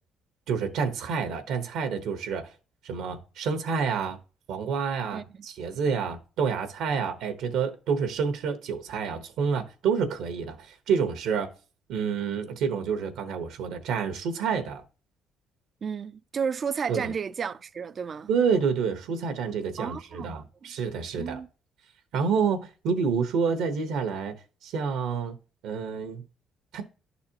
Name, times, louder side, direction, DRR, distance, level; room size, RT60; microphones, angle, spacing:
voice 1, 0.5-2.4 2.8-4.2 4.5-11.5 11.9-14.8 16.9-17.1 18.3-21.4 22.1-24.3 24.6-25.4 25.6-26.2 26.7-26.8, right 6 dB, 80° right, 1.1 m, -28 dB
voice 2, 5.1-5.5 15.8-18.3 19.8-20.4 21.2-21.5, right 6 dB, 45° right, 0.5 m, -32 dB
11.0 x 4.1 x 2.8 m
supercardioid pair, 80°, 0 cm